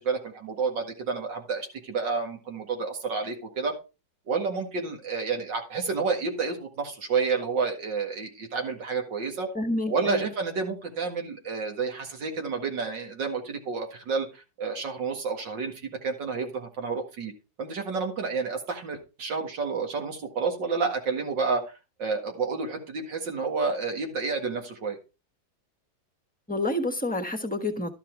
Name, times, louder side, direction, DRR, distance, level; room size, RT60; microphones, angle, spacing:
voice 1, 0.0-3.7 4.3-9.5 9.9-17.3 17.6-21.6 22.0-25.0, right 4 dB, 80° right, 2.5 m, -30 dB
voice 2, 9.5-10.3 26.5-27.9, left 1 dB, 5° left, 1.0 m, -28 dB
12.5 x 5.7 x 4.6 m
omnidirectional pair, 2.0 m